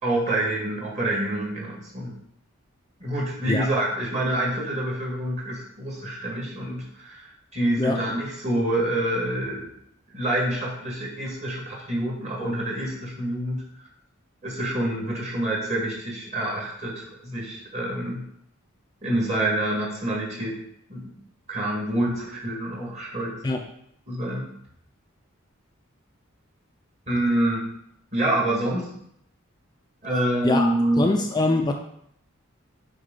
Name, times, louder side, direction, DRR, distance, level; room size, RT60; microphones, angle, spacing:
voice 1, 0.0-2.1 3.0-9.7 10.1-13.9 14.4-18.2 19.0-20.6 20.9-21.0 21.5-23.4 24.1-24.5 27.1-27.6 28.1-28.9 30.0-31.1, right 1 dB, 35° right, -3 dB, 1.9 m, -27 dB
voice 2, 30.4-31.7, left 2 dB, 20° left, 3 dB, 0.4 m, -23 dB
6.3 x 4.9 x 3.8 m, 0.72 s
head